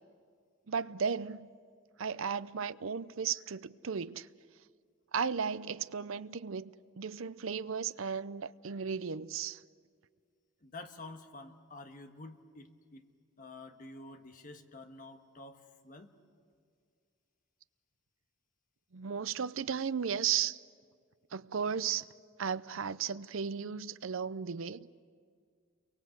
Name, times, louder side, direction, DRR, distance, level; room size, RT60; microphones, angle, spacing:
voice 1, 0.7-1.5 2.0-4.3 5.1-9.6 18.9-20.6 21.3-22.1 22.4-24.9, right 7 dB, 80° right, 0.6 m, -35 dB
voice 2, 10.6-13.1 13.4-16.1, left 2 dB, 40° left, 1.5 m, -49 dB
29.5 x 23.5 x 8.0 m
head